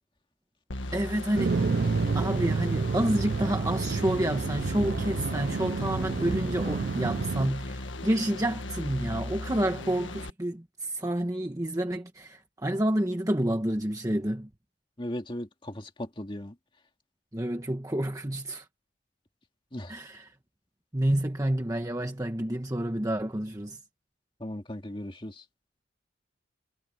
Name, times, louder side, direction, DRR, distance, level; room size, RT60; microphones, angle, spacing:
sound 1, 0.7-10.3, left 2 dB, 80° left, 1.7 m, -38 dB
voice 1, 0.9-1.7 2.1-14.5 17.3-18.7 19.9-20.3 20.9-23.8, right 1 dB, 20° right, 1.2 m, -29 dB
sound 2, 1.3-7.5, right 4 dB, 55° right, 0.4 m, -29 dB
voice 2, 15.0-16.5 19.7-19.9 24.4-25.4, left 1 dB, 25° left, 2.3 m, -37 dB
head